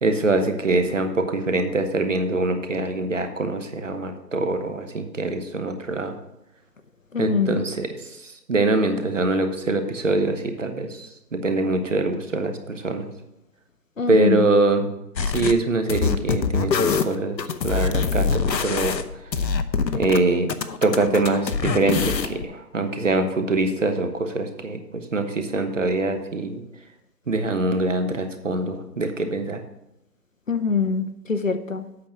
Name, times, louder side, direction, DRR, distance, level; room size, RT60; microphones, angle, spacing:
voice 1, 0.0-6.2 7.2-13.1 14.1-14.9 15.3-17.4 17.6-19.3 19.9-20.5 20.8-26.6 27.3-29.6, right 2 dB, 50° right, 7 dB, 1.1 m, -24 dB
voice 2, 7.1-7.6 14.0-14.5 30.5-31.9, left 5 dB, 50° left, 9 dB, 0.6 m, -24 dB
sound 1, 15.2-15.5 15.9-20.2 20.5-22.4, left 5 dB, 80° left, 0.9 m, -24 dB
8.3 x 6.0 x 6.4 m, 0.88 s
figure-of-eight pair, 170°, 50 cm